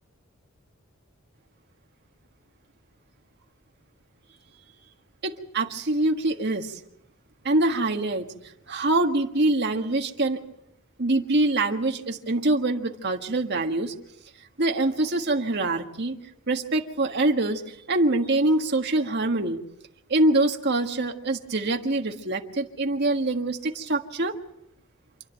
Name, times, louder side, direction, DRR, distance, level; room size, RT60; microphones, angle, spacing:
voice 1, 5.2-6.8 7.4-8.3 8.7-10.4 11.0-13.9 14.6-16.2 16.5-19.6 20.1-24.3, right 2 dB, 50° right, 3 dB, 1.6 m, -24 dB
28.0 x 11.0 x 9.1 m, 0.85 s
head